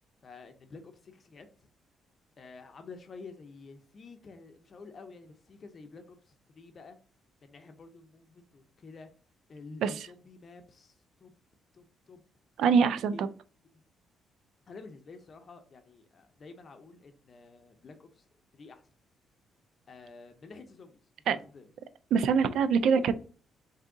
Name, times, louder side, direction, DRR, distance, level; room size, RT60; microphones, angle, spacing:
voice 1, 0.2-1.7 2.4-7.0 7.4-9.1 9.5-11.3 11.7-12.2 13.1-13.2 14.7-18.3 18.5-18.9 19.9-21.0 21.3-21.7, left 4 dB, 45° left, 7 dB, 0.6 m, -50 dB
voice 2, 12.6-13.3 21.3-21.4 22.1-23.2, right 6 dB, 75° right, 13 dB, 0.3 m, -24 dB
3.4 x 2.7 x 3.8 m, 0.39 s
cardioid pair, 90°, 0 cm